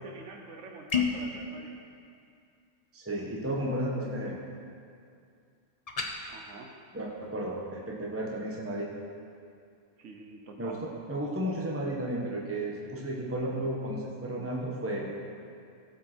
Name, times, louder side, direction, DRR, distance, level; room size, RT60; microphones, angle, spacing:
voice 1, 0.0-1.8 6.3-6.7 10.0-10.8, right 3 dB, 75° right, 2 dB, 1.3 m, -46 dB
sound 1, 0.9-1.3 5.9-6.1, left 6 dB, 35° left, 0.9 m, -28 dB
voice 2, 2.9-4.4 6.9-8.9 10.6-15.1, right 1 dB, 10° right, -3 dB, 1.2 m, -33 dB
17.0 x 7.5 x 4.4 m, 2.4 s
omnidirectional pair, 1.3 m